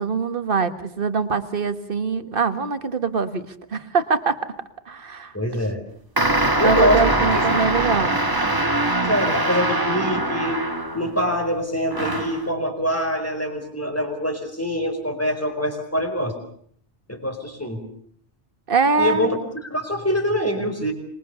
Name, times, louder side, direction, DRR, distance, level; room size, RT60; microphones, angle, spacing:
voice 1, 0.0-3.4 3.7-4.4 4.9-5.3 6.6-8.2 18.7-19.4, right 5 dB, 50° right, 10 dB, 1.7 m, -23 dB
voice 2, 5.3-5.8 6.6-7.1 8.9-10.6 10.9-16.3 17.1-17.8 19.0-20.9, equal, 10° left, 5 dB, 4.6 m, -24 dB
sound 1, 6.2-11.2 11.9-12.5, right 1 dB, 20° right, 1.6 m, -22 dB
26.0 x 22.0 x 6.9 m, 0.63 s
omnidirectional pair, 1.2 m